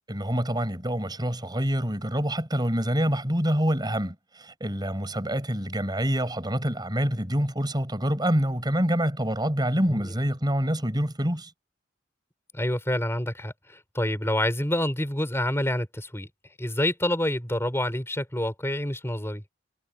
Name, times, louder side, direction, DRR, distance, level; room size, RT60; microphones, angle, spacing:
voice 1, 0.1-11.5, equal, 20° right, 5.3 m, -26 dB
voice 2, 12.5-16.3 16.6-19.4, left 1 dB, 15° left, 5.6 m, -27 dB
head